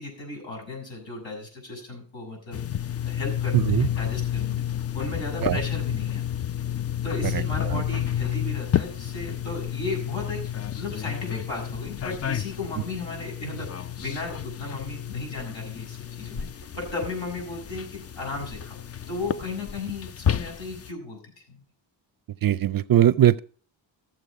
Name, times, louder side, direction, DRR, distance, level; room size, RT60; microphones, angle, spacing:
voice 1, 0.0-4.6 4.9-6.5 7.0-18.8 19.1-21.6, left 3 dB, 70° left, 6.6 m, -35 dB
sound 1, 2.5-20.9, left 10 dB, 35° left, 0.4 m, -30 dB
voice 2, 3.5-3.9 5.4-5.6 7.3-7.4 7.7-7.8 22.4-23.4, right 11 dB, 50° right, 0.5 m, -20 dB
14.5 x 7.5 x 4.9 m
cardioid pair, 90°, 48 cm